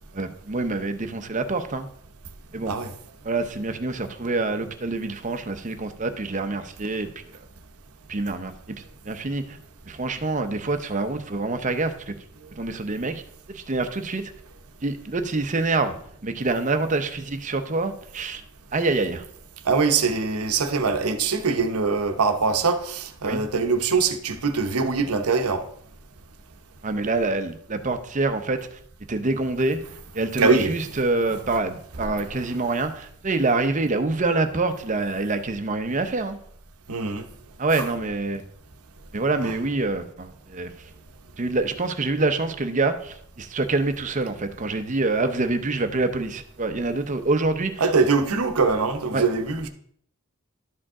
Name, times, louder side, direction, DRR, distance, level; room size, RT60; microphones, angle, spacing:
voice 1, 0.1-1.9 2.5-2.7 3.2-7.2 8.1-8.8 9.0-9.6 9.9-12.2 12.5-13.2 13.5-14.2 14.8-16.0 16.2-18.4 18.7-19.2 23.2-23.4 26.8-28.8 29.1-29.8 30.1-36.4 37.6-38.4 39.1-40.7 41.4-47.8 49.1-49.2, right 3 dB, 35° right, 0.6 m, -26 dB
voice 2, 19.6-25.6 30.4-30.7 36.9-37.2 39.4-39.5 47.8-49.7, right 4 dB, 85° right, 0.8 m, -23 dB
12.0 x 5.0 x 3.7 m
head